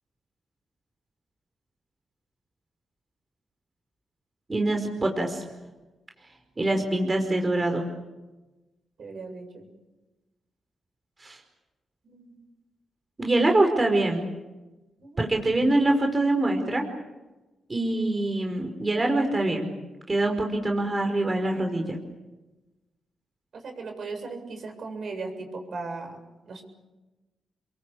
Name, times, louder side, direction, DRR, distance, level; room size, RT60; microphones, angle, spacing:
voice 1, 4.5-5.4 6.6-7.8 11.2-11.4 13.2-14.2 15.2-16.8 17.7-19.7 20.1-22.0, right 2 dB, 30° right, 3 dB, 5.0 m, -24 dB
voice 2, 9.0-9.7 12.0-12.4 15.0-15.2 23.5-26.6, right 3 dB, 60° right, 4 dB, 7.6 m, -37 dB
29.5 x 22.5 x 8.5 m, 1.1 s
cardioid pair, 70°, 0 cm